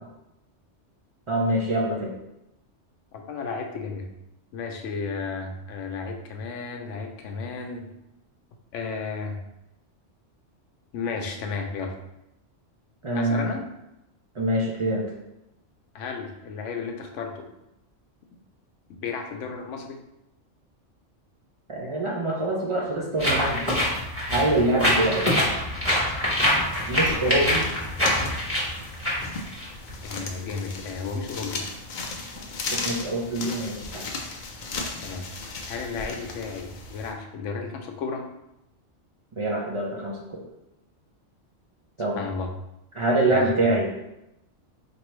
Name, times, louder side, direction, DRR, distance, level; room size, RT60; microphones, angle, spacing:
voice 1, 1.3-2.1 13.0-13.5 14.3-15.1 21.7-23.6 24.2-25.3 26.9-27.7 32.7-34.0 39.4-40.4 42.0-42.2 42.9-43.9, right 1 dB, 50° right, -1 dB, 0.3 m, -25 dB
voice 2, 3.1-4.1 4.5-7.9 8.7-9.4 10.9-12.0 13.1-13.6 15.9-17.5 18.9-20.0 30.0-31.6 35.0-35.3 35.7-38.3 42.2-42.5 43.2-43.7, left 4 dB, 80° left, 3 dB, 0.9 m, -33 dB
sound 1, 23.2-30.2, left 1 dB, 10° right, 1.0 m, -25 dB
sound 2, 26.4-37.1, left 3 dB, 60° left, 0.5 m, -36 dB
4.4 x 2.6 x 3.0 m, 0.88 s
omnidirectional pair, 1.2 m